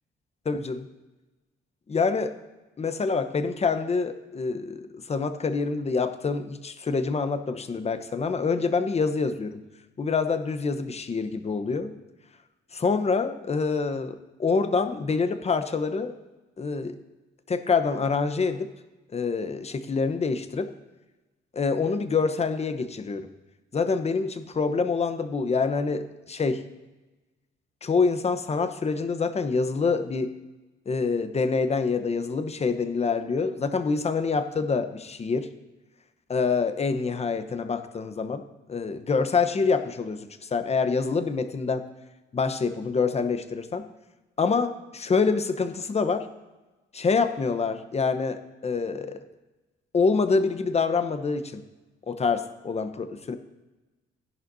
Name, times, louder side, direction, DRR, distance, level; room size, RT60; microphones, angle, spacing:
voice 1, 0.4-0.9 1.9-2.3 2.8-9.6 10.0-11.9 12.7-16.1 16.6-17.0 17.5-18.7 19.1-20.7 21.5-23.3 23.7-26.6 27.8-30.3 30.9-35.5 36.3-38.4 38.7-41.8 42.3-43.9 44.4-46.3 46.9-49.2 49.9-51.6 52.1-53.3, left 4 dB, 30° left, 9 dB, 0.9 m, -26 dB
15.5 x 11.0 x 2.7 m, 1.1 s
cardioid pair, 90°, 20 cm